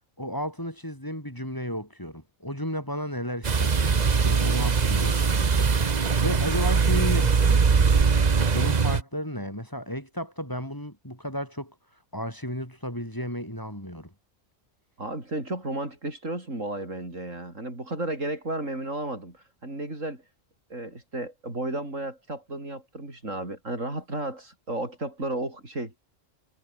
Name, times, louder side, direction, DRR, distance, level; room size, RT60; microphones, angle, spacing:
voice 1, 0.2-5.7 6.2-8.1 8.5-11.7 12.1-14.1, equal, 15° left, 6.5 m, -33 dB
sound 1, 3.4-9.0, right 5 dB, 35° right, 1.1 m, -21 dB
voice 2, 15.0-20.2 20.7-26.0, right 2 dB, 80° right, 7.2 m, -33 dB
omnidirectional pair, 1.3 m